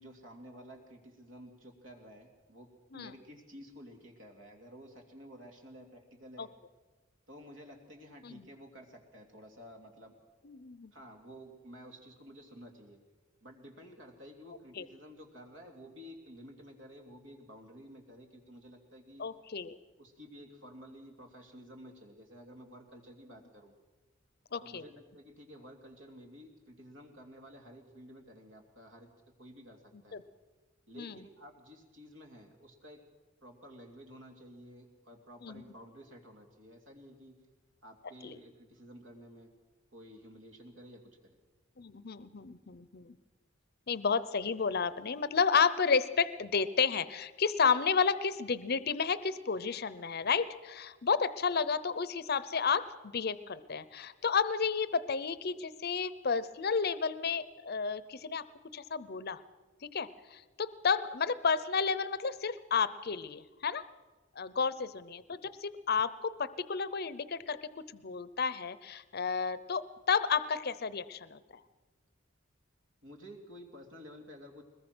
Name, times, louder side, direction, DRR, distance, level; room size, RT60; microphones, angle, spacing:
voice 1, 0.0-6.5 7.3-10.2 10.9-13.0 13.4-19.3 20.0-23.7 24.6-29.1 29.4-30.2 30.9-33.0 33.4-37.4 37.8-39.5 39.9-41.4 65.4-65.5 73.0-74.6, equal, 70° right, 3 dB, 3.0 m, -52 dB
voice 2, 10.4-10.9 14.8-14.9 19.2-19.8 24.5-24.8 31.0-31.1 35.4-35.6 38.2-38.3 41.8-43.2 43.9-58.4 58.7-59.4 59.8-63.9 64.4-71.4, left 5 dB, 50° left, 15 dB, 0.7 m, -31 dB
21.0 x 21.0 x 6.2 m, 1.3 s
head